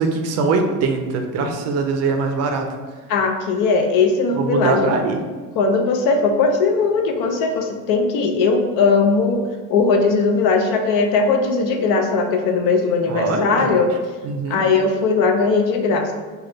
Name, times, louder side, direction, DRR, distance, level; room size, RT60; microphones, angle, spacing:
voice 1, 0.0-2.7 4.4-5.2 13.1-13.8 14.2-14.6, right 4 dB, 50° right, 5 dB, 0.4 m, -22 dB
voice 2, 3.1-4.9 5.6-9.4 9.7-13.9 14.5-16.1, left 4 dB, 70° left, 4 dB, 0.6 m, -18 dB
3.8 x 2.3 x 3.3 m, 1.4 s
cardioid pair, 145°, 34 cm